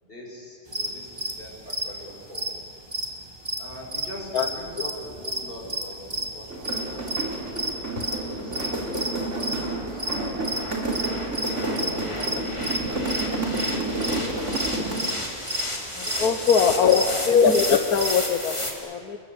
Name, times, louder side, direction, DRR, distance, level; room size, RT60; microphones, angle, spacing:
voice 1, 0.0-2.5 3.6-7.2 8.2-10.5 11.3-15.1 16.0-16.5 16.8-17.1, equal, 35° left, -2 dB, 6.5 m, -41 dB
sound 1, 0.7-4.1 4.4-9.6 10.0-12.4 12.6-12.8 13.1-13.2 13.6-18.1, right 1 dB, 15° right, 2.3 m, -31 dB
sound 2, 3.7-18.7, left 1 dB, 20° left, 3.1 m, -35 dB
sound 3, 6.5-15.2, right 2 dB, 50° right, 3.9 m, -30 dB
voice 2, 16.0-19.2, left 6 dB, 80° left, 7 dB, 1.5 m, -21 dB
28.5 x 21.5 x 8.1 m, 2.2 s
omnidirectional pair, 1.5 m